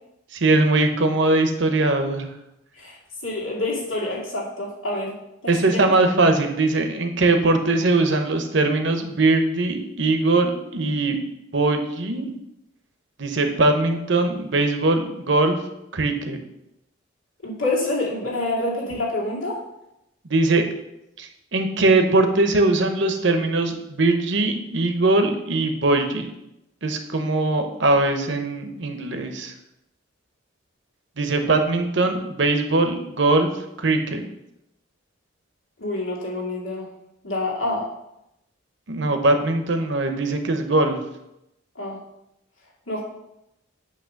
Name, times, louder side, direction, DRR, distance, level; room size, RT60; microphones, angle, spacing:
voice 1, 0.3-2.3 5.5-12.3 13.2-15.6 15.9-16.4 20.3-20.6 21.2-26.3 26.8-29.5 31.2-33.5 33.8-34.2 38.9-41.0, right 2 dB, 60° right, 6 dB, 0.8 m, -21 dB
voice 2, 3.2-5.2 5.4-5.9 17.4-19.6 35.8-36.9 37.2-37.9 41.8-42.0 42.9-43.0, left 2 dB, 85° left, -4 dB, 2.3 m, -27 dB
8.7 x 3.0 x 6.4 m, 0.85 s
head